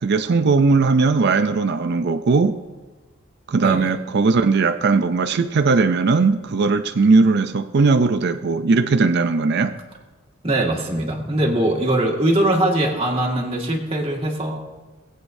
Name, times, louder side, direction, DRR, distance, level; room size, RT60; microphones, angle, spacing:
voice 1, 0.0-2.6 3.5-9.7, right 4 dB, 50° right, 9 dB, 0.5 m, -18 dB
voice 2, 10.4-14.6, right 1 dB, 30° right, -2 dB, 1.8 m, -21 dB
20.0 x 8.4 x 2.7 m, 1.3 s
head